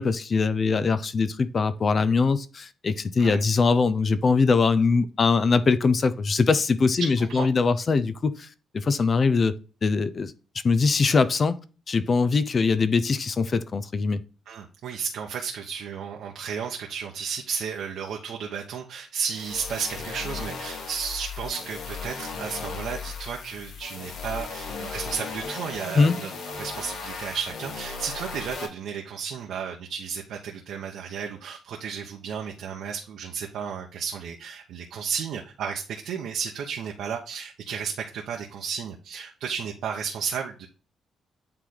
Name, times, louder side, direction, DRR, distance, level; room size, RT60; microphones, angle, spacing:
voice 1, 0.0-8.5 8.7-9.6 9.8-10.3 10.6-11.6 11.9-14.2 26.0-26.1, left 4 dB, 35° left, 0.5 m, -22 dB
voice 2, 7.0-7.5 14.5-40.7, right 7 dB, 80° right, 1.0 m, -33 dB
sound 1, 19.3-28.7, left 5 dB, 65° left, 2.0 m, -36 dB
8.9 x 3.3 x 3.9 m
cardioid pair, 120°, 0 cm